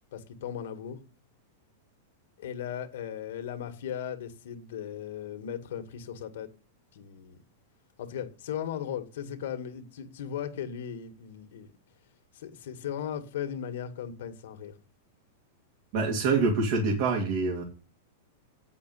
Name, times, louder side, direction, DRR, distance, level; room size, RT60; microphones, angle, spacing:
voice 1, 0.1-1.0 2.4-6.5 6.9-7.4 8.0-11.7 12.3-14.7, left 9 dB, 70° left, 2.0 m, -37 dB
voice 2, 15.9-17.6, right 4 dB, 55° right, 3.0 m, -25 dB
8.6 x 6.8 x 8.4 m
hypercardioid pair, 130°, 0 cm